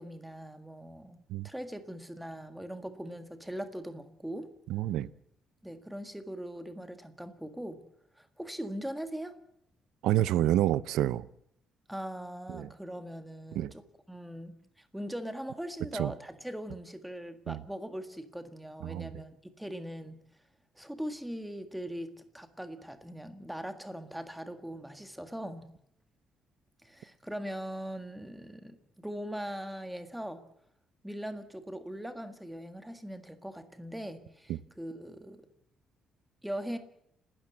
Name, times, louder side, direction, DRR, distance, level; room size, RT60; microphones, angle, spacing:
voice 1, 0.0-4.5 5.6-7.8 8.2-9.4 11.9-20.2 20.7-25.7 26.8-30.4 31.0-35.5 36.4-36.8, equal, 5° right, 1.7 m, -41 dB
voice 2, 4.7-5.1 10.0-11.3 12.5-12.7 13.6-13.7 15.9-16.1 17.5-17.6 18.8-19.1, right 13 dB, 85° right, 0.7 m, -28 dB
30.0 x 13.0 x 7.7 m
cardioid pair, 160°, 0 cm